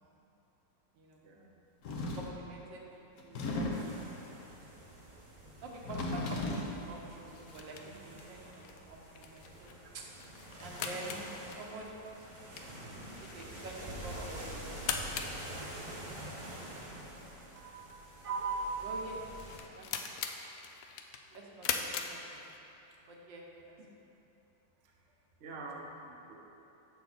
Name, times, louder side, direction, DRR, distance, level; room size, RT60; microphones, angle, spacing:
voice 1, 1.2-1.5 17.5-18.0 25.4-26.3, right 3 dB, 50° right, -1 dB, 0.8 m, -47 dB
sound 1, 1.8-2.4 3.2-4.0 5.7-6.8, left 2 dB, 60° left, 1.1 m, -35 dB
voice 2, 1.9-3.6 4.2-4.5 5.6-10.0 10.6-11.3 11.6-11.9 12.6-13.1 13.3-15.6 18.2-19.2 19.7-20.1 21.3-21.8 22.1-22.5 23.1-23.8, right 3 dB, 75° right, -1 dB, 1.6 m, -44 dB
sound 2, 3.7-19.6, right 1 dB, 30° right, 1.2 m, -47 dB
sound 3, 7.3-22.9, left 7 dB, 85° left, 0.7 m, -43 dB
7.0 x 6.9 x 4.0 m, 3.0 s
omnidirectional pair, 2.0 m